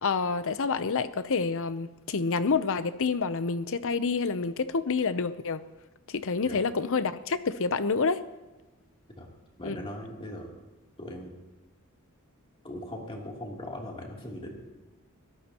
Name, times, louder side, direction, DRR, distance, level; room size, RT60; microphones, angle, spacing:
voice 1, 0.0-5.6 6.1-8.2 9.6-9.8, left 4 dB, 65° left, 0.7 m, -28 dB
voice 2, 9.6-10.5 11.0-11.3 12.6-14.6, left 1 dB, 25° left, 3.2 m, -39 dB
23.5 x 18.0 x 3.0 m
head